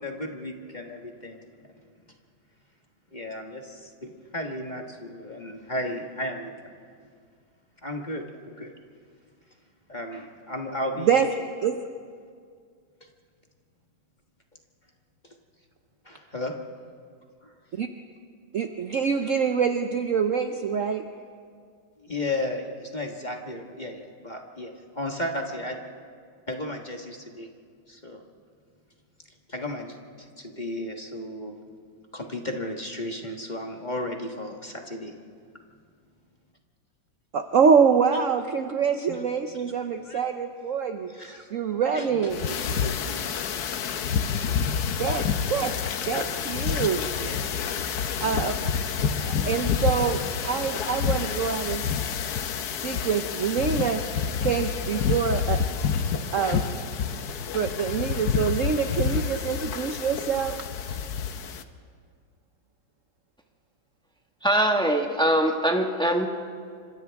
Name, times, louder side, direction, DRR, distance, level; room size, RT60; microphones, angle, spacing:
voice 1, 0.0-1.4 3.1-6.7 7.8-8.7 9.9-11.2 16.0-16.5 17.4-17.5 22.0-25.8 26.5-27.5 27.9-28.2 29.5-31.5 32.1-35.1 39.1-39.2 40.0-40.2 41.1-41.5 41.9-43.3 43.9-44.0 44.3-44.5 47.1-47.6 51.1-51.2, left 1 dB, 25° left, 2 dB, 1.4 m, -34 dB
voice 2, 18.5-21.0 37.3-41.1 41.5-42.4 45.0-45.2 45.5-45.7 46.1-47.1 48.2-48.6 49.3-51.9 52.8-54.0 54.4-55.6 56.3-56.6 57.5-60.6, right 6 dB, 60° right, 6 dB, 0.9 m, -25 dB
sound 1, 42.3-61.6, left 7 dB, 60° left, 1.2 m, -28 dB
voice 3, 64.4-66.3, right 1 dB, 5° left, 2 dB, 1.2 m, -22 dB
29.0 x 26.5 x 3.5 m, 2.1 s
omnidirectional pair, 2.1 m